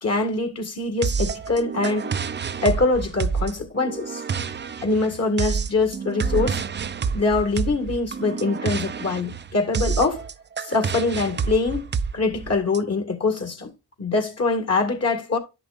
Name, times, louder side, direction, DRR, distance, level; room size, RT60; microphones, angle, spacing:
voice 1, 0.0-2.2 2.6-4.2 4.8-6.6 7.1-10.2 10.6-11.9 12.1-13.7 14.0-15.4, left 3 dB, 40° left, 2.1 m, -23 dB
sound 1, 1.0-12.8, right 6 dB, 30° right, 0.6 m, -28 dB
10.5 x 6.0 x 2.6 m
supercardioid pair, 60°, 38 cm